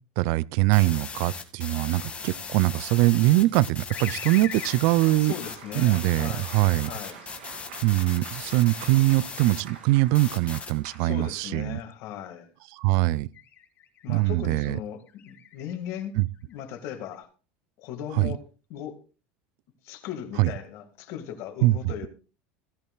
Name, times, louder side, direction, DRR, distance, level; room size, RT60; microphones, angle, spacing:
voice 1, 0.2-5.3 5.7-6.9 7.8-11.8 12.8-13.3 14.1-14.8 16.2-16.3 18.2-18.3 20.4-20.5 21.6-21.8, right 19 dB, 65° right, 0.4 m, -22 dB
sound 1, 0.7-9.6 10.1-10.7, left 5 dB, 20° left, 2.0 m, -38 dB
sound 2, 3.9-4.8 5.8-7.7 8.3-11.6 12.1-12.5 13.3-14.3 15.0-15.7 16.2-17.1, left 8 dB, 40° left, 3.2 m, -44 dB
Cheering / Applause, 3.9-11.6, right 5 dB, 90° right, 2.7 m, -47 dB
voice 2, 5.2-6.5 6.8-7.2 11.0-12.5 14.0-16.2 16.5-17.3 17.8-19.0 19.8-22.1, left 9 dB, 60° left, 2.1 m, -37 dB
16.5 x 11.0 x 2.4 m
supercardioid pair, 100°, 5 cm